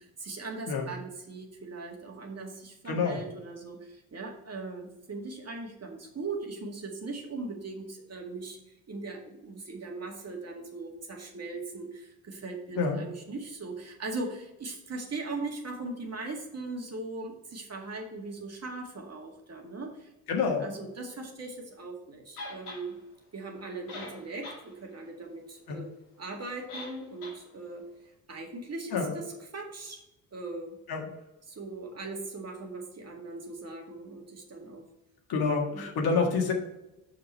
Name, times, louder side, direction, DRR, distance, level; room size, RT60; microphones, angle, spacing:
voice 1, 0.0-8.6 8.9-20.1 20.6-23.0 23.3-25.9 26.2-27.9 28.3-30.0 30.3-30.8 31.5-34.9 35.7-35.9 36.2-36.3, right 3 dB, 35° right, 2 dB, 1.9 m, -39 dB
voice 2, 2.9-3.2 12.8-13.0 20.3-20.7 25.7-25.8 28.9-29.1 30.9-31.1 35.3-36.5, left 5 dB, 60° left, 2 dB, 1.8 m, -27 dB
sound 1, 22.4-22.8 23.6-23.7 23.9-24.6 25.0-25.1 26.7-26.9 27.2-27.4, left 2 dB, 90° left, 2.5 m, -41 dB
6.5 x 5.8 x 4.3 m, 0.93 s
hypercardioid pair, 50°, 43 cm